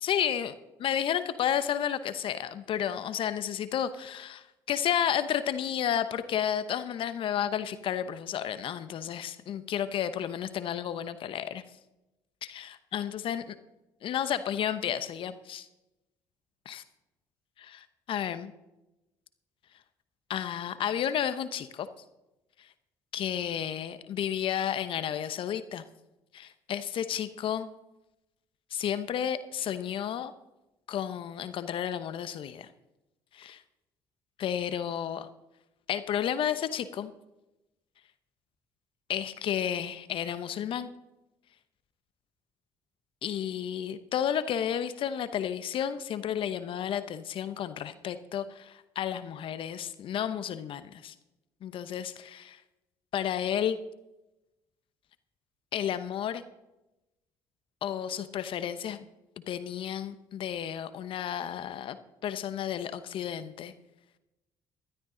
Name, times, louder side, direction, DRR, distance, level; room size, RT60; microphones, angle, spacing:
voice 1, 0.0-0.5 0.8-11.8 12.4-13.5 14.0-15.7 16.6-16.8 17.6-18.5 20.3-21.9 22.6-22.7 23.1-25.9 26.3-27.7 28.7-30.3 30.9-32.7 33.3-33.6 34.4-35.3 35.9-37.1 39.1-40.9 43.2-51.1 51.6-52.6 53.1-53.8 55.7-56.4 57.8-59.0 59.4-62.0 62.2-63.7, left 9 dB, 60° left, 13 dB, 0.9 m, -32 dB
15.0 x 12.5 x 3.9 m, 0.95 s
supercardioid pair, 65°, 10 cm